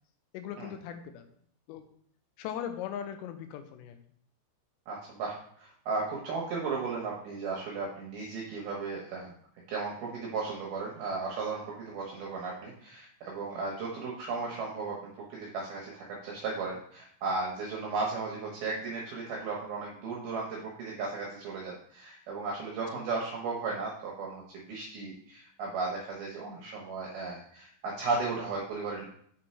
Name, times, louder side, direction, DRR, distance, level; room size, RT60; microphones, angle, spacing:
voice 1, 0.3-1.2 1.7-1.8 2.4-4.0 22.9-23.0, left 9 dB, 80° left, 7 dB, 2.7 m, -39 dB
voice 2, 4.9-9.3 9.7-15.0 15.3-29.0, right 4 dB, 70° right, -2 dB, 2.5 m, -35 dB
7.5 x 4.5 x 4.3 m, 0.63 s
omnidirectional pair, 5.4 m